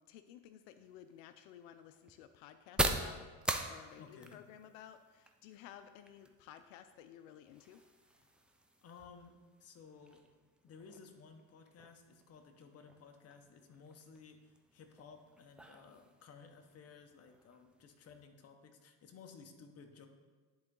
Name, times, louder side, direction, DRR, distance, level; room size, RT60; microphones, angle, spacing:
voice 1, 0.0-3.3 3.7-7.8, left 10 dB, 90° left, 10 dB, 0.5 m, -55 dB
sound 1, 0.6-18.2, right 1 dB, 5° right, 0.4 m, -44 dB
voice 2, 4.0-4.4 8.8-10.3 10.6-20.1, left 5 dB, 40° left, 5 dB, 1.0 m, -56 dB
10.5 x 4.0 x 3.7 m, 1.4 s
supercardioid pair, 105°, 38 cm